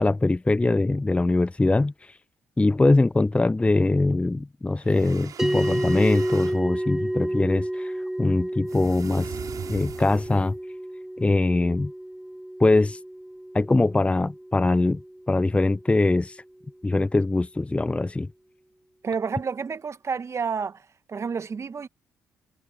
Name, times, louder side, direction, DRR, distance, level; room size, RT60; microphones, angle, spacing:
voice 1, 0.0-1.9 2.6-7.9 8.2-9.3 9.7-10.5 11.2-11.9 12.6-13.0 13.5-15.0 15.3-16.4 16.8-18.3, left 2 dB, 15° left, 0.7 m, -22 dB
sound 1, 4.8-6.6 8.7-10.6, right 8 dB, 60° right, 6.7 m, -40 dB
sound 2, 5.4-15.9, right 1 dB, 5° right, 4.4 m, -31 dB
voice 2, 19.0-20.8 21.1-21.9, right 5 dB, 40° right, 1.5 m, -29 dB
hypercardioid pair, 45°, 7 cm